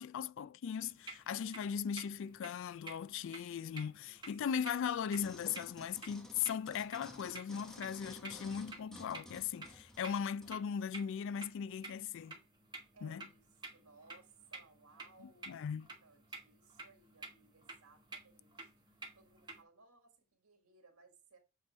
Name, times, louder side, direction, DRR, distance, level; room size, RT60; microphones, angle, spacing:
voice 1, 0.0-12.3 13.0-13.3 15.5-15.9, left 7 dB, 60° left, 0.3 m, -38 dB
sound 1, 0.8-19.6, right 3 dB, 20° right, 1.2 m, -53 dB
voice 2, 3.9-4.4 12.9-13.5 13.7-15.7 16.0-18.7 19.1-21.4, right 3 dB, 85° right, 1.8 m, -64 dB
sound 2, 5.1-10.6 11.2-11.3, left 1 dB, 5° left, 1.2 m, -54 dB
7.9 x 3.9 x 4.2 m
head